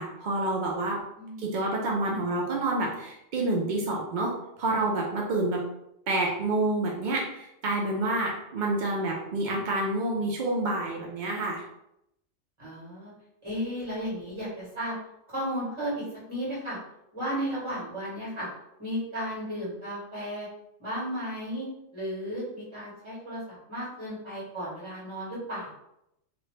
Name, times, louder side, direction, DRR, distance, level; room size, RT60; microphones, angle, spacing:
voice 1, 0.0-1.0 1.4-4.3 4.6-5.6 6.1-11.6, right 2 dB, 70° right, -1 dB, 0.4 m, -28 dB
voice 2, 12.6-13.1 13.4-15.0 15.3-16.8 17.1-18.5 18.8-20.5 20.8-25.7, equal, 20° right, -8 dB, 1.4 m, -34 dB
2.7 x 2.5 x 3.1 m, 0.82 s
omnidirectional pair, 1.4 m